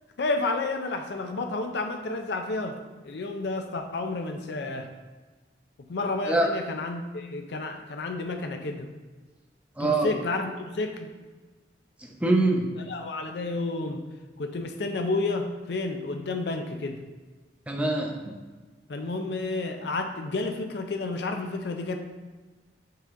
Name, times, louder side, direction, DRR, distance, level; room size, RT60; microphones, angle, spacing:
voice 1, 0.2-4.9 5.9-8.9 9.8-11.1 12.8-14.0 14.4-17.0 18.9-22.0, left 3 dB, 70° left, 4 dB, 0.5 m, -31 dB
voice 2, 9.8-10.1 12.0-12.8 17.7-18.4, right 2 dB, 10° right, 1 dB, 0.6 m, -24 dB
5.8 x 5.3 x 3.7 m, 1.3 s
head